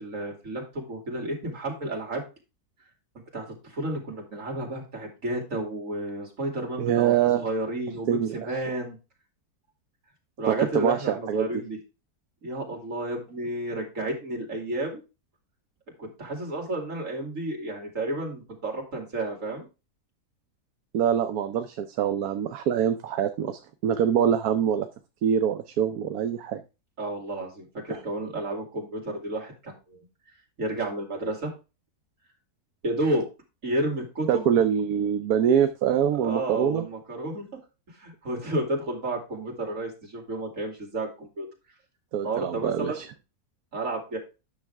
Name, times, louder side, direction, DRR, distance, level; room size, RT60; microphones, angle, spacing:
voice 1, 0.0-2.2 3.3-8.1 8.3-9.0 10.4-11.8 12.4-15.0 16.0-19.6 27.0-30.1 30.6-31.5 32.8-33.3 33.6-34.5 36.1-37.5 37.9-41.5 42.2-43.0 43.7-44.2, right 1 dB, 55° right, 0 dB, 3.1 m, -31 dB
voice 2, 6.8-7.4 8.1-8.4 10.5-11.5 20.9-24.9 25.2-26.6 27.9-28.0 34.3-36.9 42.1-43.1, right 9 dB, 75° right, 9 dB, 1.2 m, -24 dB
9.6 x 6.4 x 3.4 m, 0.29 s
omnidirectional pair, 1.6 m